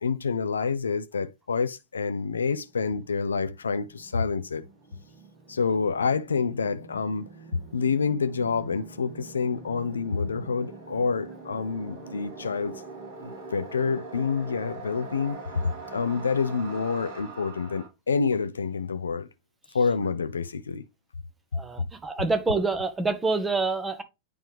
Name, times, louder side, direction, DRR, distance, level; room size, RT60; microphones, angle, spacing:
voice 1, 0.0-4.6 5.5-7.3 7.7-12.7 13.2-15.6 15.9-19.3 19.7-20.8, left 5 dB, 70° left, 0.4 m, -28 dB
sound 1, 2.6-17.9, right 3 dB, 55° right, 3.7 m, -44 dB
voice 2, 21.5-24.0, right 3 dB, 15° right, 1.1 m, -27 dB
9.5 x 3.3 x 3.3 m
figure-of-eight pair, 90°, 0 cm